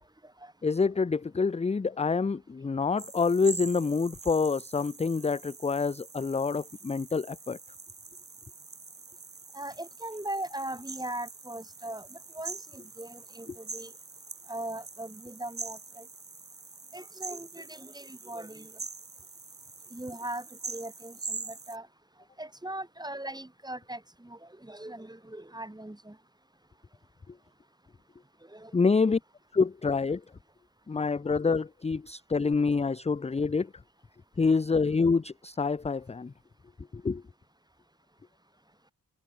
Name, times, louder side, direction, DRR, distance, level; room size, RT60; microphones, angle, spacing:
voice 1, 0.6-7.6 28.7-29.2 29.5-30.2 30.9-33.7 34.4-36.3 36.9-37.2, left 4 dB, 20° left, 0.4 m, -27 dB
sound 1, 3.0-21.8, right 4 dB, 35° right, 4.8 m, -44 dB
voice 2, 9.5-13.9 14.5-16.0 16.9-18.7 19.9-21.9 22.4-26.2 28.5-29.1, right 1 dB, 10° right, 4.8 m, -40 dB
wide cardioid pair, 140°, 37 cm